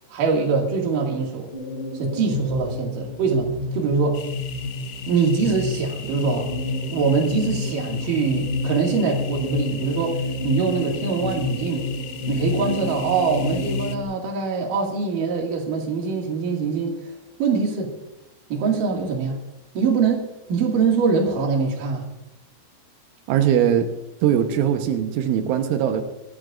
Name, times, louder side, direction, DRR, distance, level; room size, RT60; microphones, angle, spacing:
voice 1, 0.1-1.5 1.9-4.2 5.1-6.5 6.9-11.8 12.3-17.9 18.5-19.4 19.7-20.2 20.5-22.1, right 4 dB, 55° right, 0 dB, 3.2 m, -23 dB
waiting on contact, 1.5-14.0, left 2 dB, 65° left, 4.9 m, -29 dB
zion night crickets, 4.1-14.0, left 8 dB, 85° left, 3.3 m, -40 dB
voice 2, 23.3-23.9 24.2-26.0, right 9 dB, 85° right, 6 dB, 3.5 m, -20 dB
24.5 x 11.5 x 2.5 m, 0.93 s
omnidirectional pair, 5.4 m